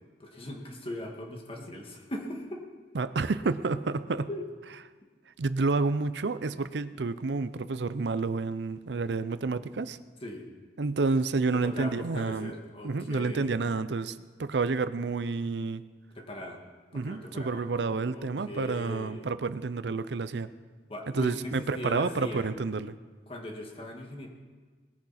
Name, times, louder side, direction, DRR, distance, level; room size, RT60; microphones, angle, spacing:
voice 1, 0.2-2.6 4.3-4.4 10.2-10.5 11.5-13.5 16.2-16.6 16.9-17.7 18.1-19.3 20.9-22.5 23.3-24.3, left 1 dB, 35° left, 1 dB, 1.9 m, -39 dB
voice 2, 2.9-4.3 5.4-10.0 10.8-12.5 12.8-15.8 16.9-20.5 21.1-23.0, right 3 dB, 75° right, 14 dB, 0.6 m, -29 dB
19.5 x 10.5 x 4.3 m, 1.4 s
head